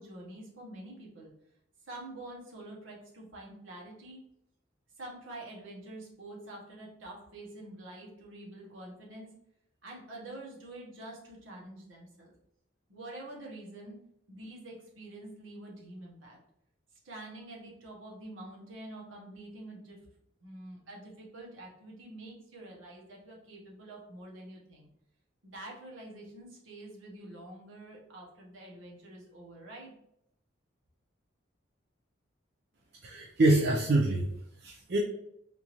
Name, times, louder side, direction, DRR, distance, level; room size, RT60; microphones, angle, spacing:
voice 1, 0.0-1.3 1.8-4.2 5.0-9.3 9.8-12.3 12.9-14.0 14.3-16.4 17.0-20.0 20.4-24.9 25.4-29.9, right 1 dB, 80° right, -2 dB, 1.1 m, -47 dB
voice 2, 33.0-34.3 34.6-35.0, right 2 dB, 55° right, -1 dB, 0.4 m, -25 dB
3.6 x 2.6 x 2.9 m, 0.76 s
head